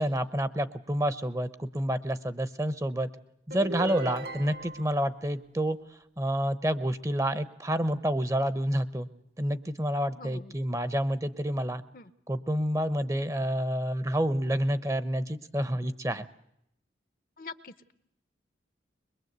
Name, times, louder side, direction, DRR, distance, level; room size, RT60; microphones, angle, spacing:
voice 1, 0.0-3.1 3.5-5.8 6.2-9.1 9.4-11.8 12.3-16.3, equal, 20° right, 14 dB, 0.8 m, -29 dB
sound 1, 3.5-5.0, right 1 dB, 60° right, 1.3 m, -36 dB
voice 2, 10.2-10.5 11.9-12.1 17.4-17.9, left 3 dB, 50° left, 14 dB, 0.9 m, -44 dB
22.5 x 22.0 x 8.1 m, 0.77 s
head